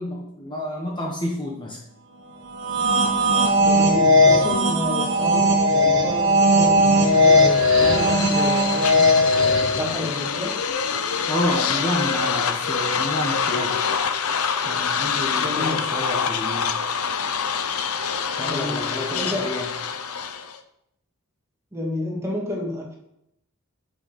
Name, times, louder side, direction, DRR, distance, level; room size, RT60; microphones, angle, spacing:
voice 1, 0.0-1.8 11.3-14.0 14.6-16.8 18.4-19.7, left 1 dB, 20° left, -1 dB, 1.3 m, -29 dB
sound 1, 2.5-9.9, left 1 dB, 55° right, 1.9 m, -18 dB
voice 2, 3.6-8.9 9.4-10.6 15.3-15.8 18.4-18.8 19.1-19.5 21.7-23.0, left 1 dB, 15° right, -2 dB, 2.3 m, -30 dB
sound 2, 7.0-20.6, left 6 dB, 85° left, 0.8 m, -26 dB
14.0 x 6.3 x 4.3 m, 0.79 s
head